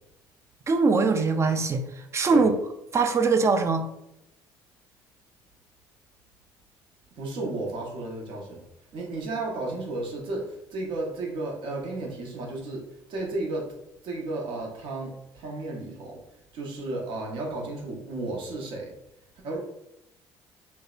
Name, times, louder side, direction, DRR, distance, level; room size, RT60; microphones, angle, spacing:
voice 1, 0.7-1.9 2.1-2.5 2.9-3.8, right 4 dB, 30° right, 6 dB, 0.4 m, -22 dB
voice 2, 7.2-8.6 8.9-13.7 14.0-16.2 16.5-18.9 19.4-19.6, right 2 dB, 65° right, -1 dB, 0.7 m, -33 dB
2.6 x 2.1 x 2.3 m, 0.83 s
supercardioid pair, 70°, 9 cm